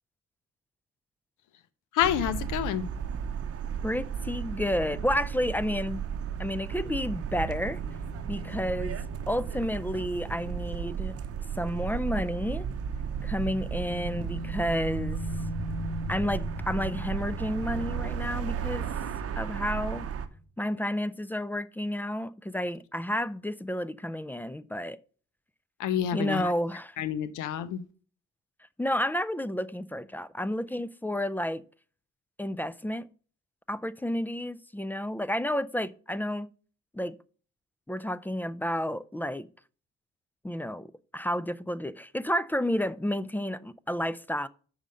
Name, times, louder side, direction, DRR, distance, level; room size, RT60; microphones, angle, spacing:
voice 1, 1.9-2.9 25.8-26.5 27.0-27.8, left 10 dB, 85° left, 0.7 m, -28 dB
sound 1, 2.0-20.3, right 7 dB, 50° right, 0.8 m, -34 dB
voice 2, 3.8-6.0 6.4-7.8 8.3-11.2 11.5-12.7 13.2-15.2 16.1-18.9 19.4-20.1 20.6-25.0 26.1-27.0 28.8-31.6 32.4-33.1 33.7-36.5 36.9-37.2 37.9-39.5 40.4-44.5, equal, 5° left, 0.3 m, -31 dB
sound 2, 6.9-12.3 12.6-12.7 13.9-20.4, left 1 dB, 35° left, 2.5 m, -41 dB
6.6 x 5.0 x 6.3 m
cardioid pair, 90°, 30 cm